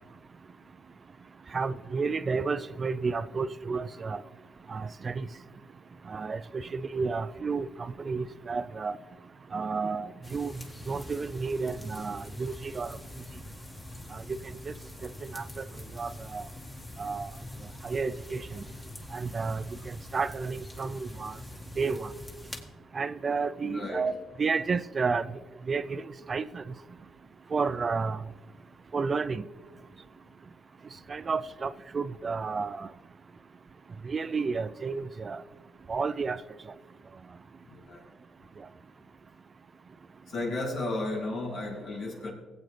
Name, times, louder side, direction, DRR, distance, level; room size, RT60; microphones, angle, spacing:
voice 1, 1.5-4.2 4.7-5.3 6.1-9.0 9.5-10.5 10.9-13.0 14.1-14.7 15.2-15.6 15.9-16.5 17.0-17.3 17.8-18.6 19.1-21.4 21.8-22.1 22.9-24.1 24.4-25.4 25.7-26.6 27.5-28.2 28.9-29.4 31.1-32.9 34.0-35.4 35.9-36.4, right 4 dB, 40° right, 14 dB, 0.4 m, -31 dB
sound 1, 10.2-22.6, left 1 dB, 20° left, 1.6 m, -44 dB
voice 2, 23.6-24.1 37.6-38.0 40.3-42.3, left 2 dB, 65° left, -2 dB, 2.9 m, -34 dB
19.0 x 8.3 x 3.3 m, 1.3 s
cardioid pair, 90°, 0 cm